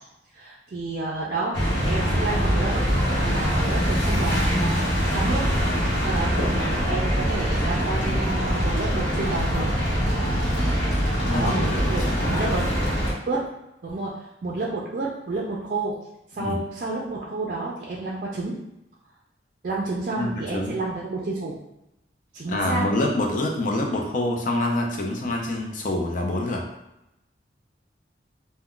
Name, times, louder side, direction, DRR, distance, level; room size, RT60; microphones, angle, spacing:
voice 1, 0.3-1.6 1.8-2.8 3.2-4.8 5.1-5.4 6.0-9.7 11.3-12.7 13.3-13.5 13.8-16.0 16.3-18.6 19.6-21.6 22.3-22.8, right 3 dB, 50° right, -4 dB, 0.4 m, -30 dB
sound 1, 1.5-13.1, equal, 80° left, 0.9 m, -23 dB
voice 2, 11.2-12.6 16.4-16.6 20.2-20.8 22.5-26.6, left 1 dB, 45° left, 1 dB, 0.5 m, -26 dB
2.3 x 2.1 x 3.7 m, 0.88 s
head